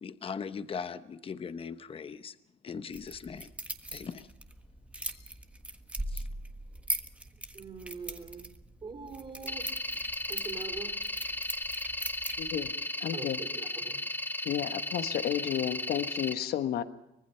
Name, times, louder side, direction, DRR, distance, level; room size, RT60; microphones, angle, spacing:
voice 1, 0.0-2.4 2.6-3.5 3.9-4.3 5.0-5.2 6.1-6.2, left 6 dB, 35° left, 1.0 m, -39 dB
sound 1, 2.9-12.7, right 1 dB, 5° right, 1.5 m, -41 dB
voice 2, 7.5-8.5 8.8-9.7 10.3-11.0 13.1-14.1, right 4 dB, 30° right, 4.1 m, -43 dB
sound 2, 9.5-16.3, left 1 dB, 10° left, 1.2 m, -35 dB
voice 3, 12.4-12.7 13.0-13.4 14.4-16.8, left 10 dB, 70° left, 1.3 m, -32 dB
25.0 x 20.0 x 5.7 m
cardioid pair, 110°, 17 cm